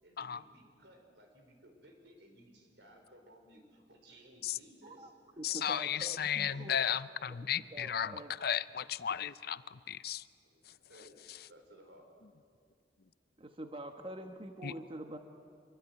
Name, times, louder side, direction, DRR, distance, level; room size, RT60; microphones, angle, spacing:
voice 1, 0.0-5.1 5.5-7.1 10.4-12.1, equal, 75° right, 4 dB, 4.9 m, -59 dB
voice 2, 4.8-6.8 7.3-8.3 13.4-15.2, right 1 dB, 30° right, 6 dB, 1.2 m, -46 dB
voice 3, 5.4-8.1 8.4-10.2 14.6-14.7, left 9 dB, 60° left, 16 dB, 0.6 m, -34 dB
25.0 x 23.5 x 9.4 m, 2.2 s
head